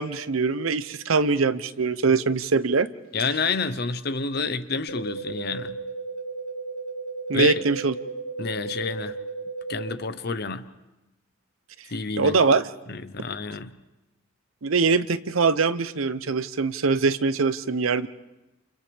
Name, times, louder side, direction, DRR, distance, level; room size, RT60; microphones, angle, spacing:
voice 1, 0.0-2.9 7.3-7.9 12.2-12.7 14.6-18.1, right 4 dB, 85° right, 14 dB, 0.7 m, -22 dB
voice 2, 3.1-5.8 7.3-7.6 8.4-9.2 9.7-10.7 11.9-12.4 12.9-13.7, left 4 dB, 50° left, 12 dB, 0.8 m, -29 dB
sound 1, 4.9-9.9, right 4 dB, 85° left, 2.9 m, -34 dB
29.0 x 29.0 x 3.5 m, 1.0 s
head